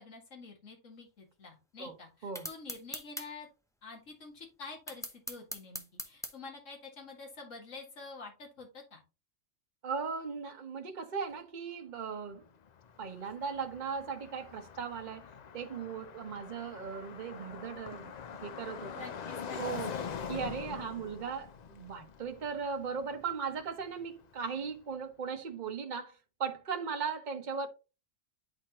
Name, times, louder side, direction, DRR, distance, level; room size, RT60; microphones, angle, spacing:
voice 1, 0.0-3.5 3.8-9.0 18.9-20.2, left 4 dB, 75° left, 2.3 m, -48 dB
sound 1, 2.4-3.3 4.9-6.3, equal, 5° left, 0.6 m, -40 dB
voice 2, 9.8-12.4 13.0-15.3 15.5-18.1 18.4-18.9 19.6-19.9 20.3-27.7, right 6 dB, 40° right, 1.1 m, -38 dB
Car passing by, 12.4-24.4, left 6 dB, 55° left, 0.5 m, -44 dB
10.0 x 4.3 x 3.0 m
omnidirectional pair, 1.3 m